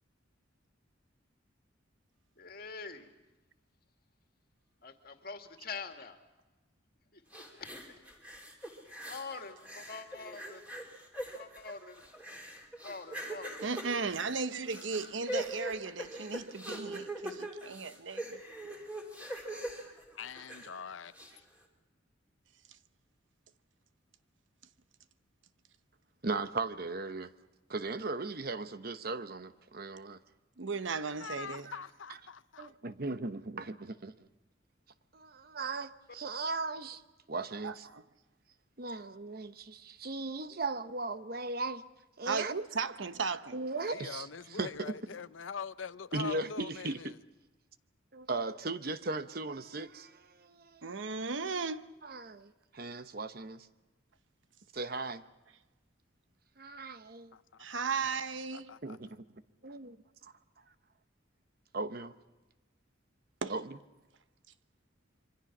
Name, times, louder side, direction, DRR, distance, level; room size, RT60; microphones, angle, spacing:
voice 1, 2.4-3.1 4.8-6.2 7.1-8.4 9.0-10.6 11.3-12.0 12.8-13.6 14.8-15.1 19.4-19.6, left 4 dB, 50° left, 2.2 m, -45 dB
sound 1, 7.3-9.3 9.6-20.8 21.1-21.3, right 1 dB, 10° right, 3.6 m, -42 dB
voice 2, 13.6-18.4 30.6-31.7 37.6-38.0 42.2-43.6 50.8-51.9 57.6-58.7 63.4-63.6, right 4 dB, 80° right, 1.0 m, -36 dB
voice 3, 20.1-21.4 31.2-32.7 43.8-47.2 57.3-58.2 58.5-59.0, left 5 dB, 90° left, 0.7 m, -44 dB
voice 4, 26.2-27.3 27.7-30.2 32.6-34.3 35.1-37.0 37.3-37.9 38.8-41.8 42.2-42.5 43.5-44.3 44.5-44.9 46.1-47.1 48.1-51.0 52.0-53.7 54.7-55.2 56.6-57.3 58.8-59.2 59.6-59.9 61.7-62.1 63.5-63.8, right 3 dB, 50° right, 1.0 m, -37 dB
26.5 x 24.5 x 6.1 m
head